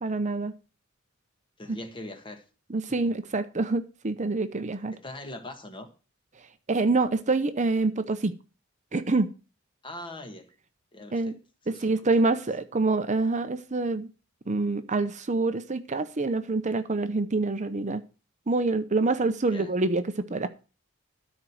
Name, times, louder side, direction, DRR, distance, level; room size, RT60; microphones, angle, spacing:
voice 1, 0.0-0.6 2.7-5.0 6.7-8.3 8.9-9.3 11.1-11.4 11.7-14.1 14.5-18.0 18.5-20.5, right 3 dB, 35° right, 0.7 m, -26 dB
voice 2, 1.6-2.4 2.9-3.0 4.9-5.9 9.8-10.5 10.9-11.3 11.7-11.9 12.2-12.3 19.4-19.7, left 1 dB, 25° left, 1.5 m, -41 dB
13.0 x 4.6 x 7.7 m
head